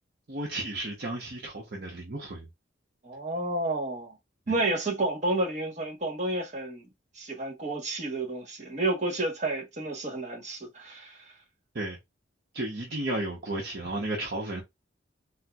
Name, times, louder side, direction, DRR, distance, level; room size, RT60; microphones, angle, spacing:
voice 1, 0.3-2.5 11.7-12.0 12.5-14.6, right 1 dB, 55° right, 0.8 m, -33 dB
voice 2, 3.0-4.2 4.5-6.9 7.1-11.3, right 2 dB, 40° right, 1.2 m, -30 dB
4.3 x 2.1 x 2.3 m
head